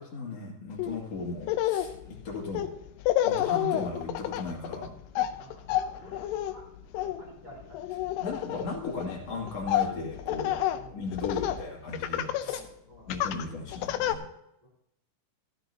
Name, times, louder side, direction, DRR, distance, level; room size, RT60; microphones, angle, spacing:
voice 1, 0.0-1.9 2.2-2.7 3.2-4.9 8.2-10.6 10.9-12.6 13.1-14.2, left 3 dB, 45° left, -2 dB, 2.9 m, -36 dB
Laughter, 0.8-1.0 1.4-11.6 11.9-12.7 13.1-14.1, left 12 dB, 85° left, 2.7 m, -30 dB
voice 2, 5.4-6.7 6.9-8.2 10.6-11.4 12.3-13.1 14.6-14.7, equal, 10° right, -5 dB, 3.9 m, -52 dB
14.0 x 13.0 x 2.8 m, 0.83 s
omnidirectional pair, 4.7 m